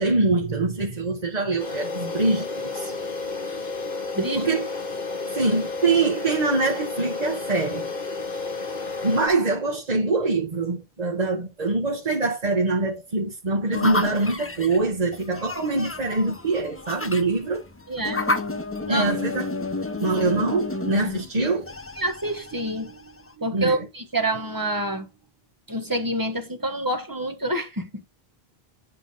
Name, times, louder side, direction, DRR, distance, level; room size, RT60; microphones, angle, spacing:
voice 1, 0.0-2.9 4.3-4.7 5.3-7.9 9.0-17.7 18.9-19.5 20.0-21.7 23.5-23.9, right 3 dB, 40° right, 1.5 m, -24 dB
sound 1, 1.6-9.3, left 3 dB, 45° left, 1.4 m, -31 dB
voice 2, 4.1-4.5 17.9-18.6 18.9-19.1 21.4-21.5 22.0-25.1 25.7-28.1, right 1 dB, 20° right, 1.2 m, -28 dB
sound 2, 13.7-23.3, left 2 dB, 15° left, 0.6 m, -31 dB
10.0 x 3.6 x 5.5 m
omnidirectional pair, 1.0 m